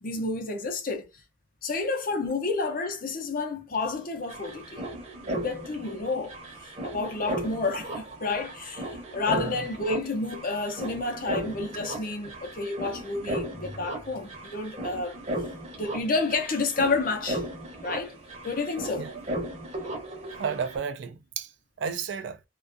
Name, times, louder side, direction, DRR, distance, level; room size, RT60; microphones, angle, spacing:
voice 1, 0.0-1.1 1.6-4.8 5.2-15.2 15.8-17.4 17.8-18.1 18.4-19.1, left 3 dB, 50° left, 0.6 m, -30 dB
sound 1, 3.7-3.8 4.0-20.8, right 1 dB, 35° right, 0.7 m, -36 dB
voice 2, 20.4-21.5 21.8-22.4, right 6 dB, 70° right, 0.3 m, -32 dB
2.4 x 2.3 x 2.5 m
head